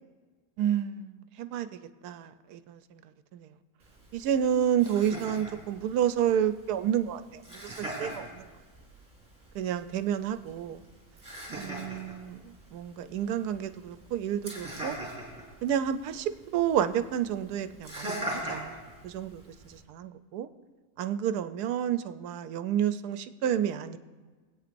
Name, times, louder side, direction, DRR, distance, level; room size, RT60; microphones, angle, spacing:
voice 1, 0.6-1.7 2.0-3.0 3.3-3.5 4.1-8.5 9.5-10.8 11.6-15.0 15.6-20.5 21.0-24.0, right 9 dB, 90° right, 11 dB, 1.1 m, -30 dB
Laughter, 3.8-19.8, right 1 dB, 10° right, 3.9 m, -42 dB
22.0 x 8.8 x 2.5 m, 1.4 s
omnidirectional pair, 1.6 m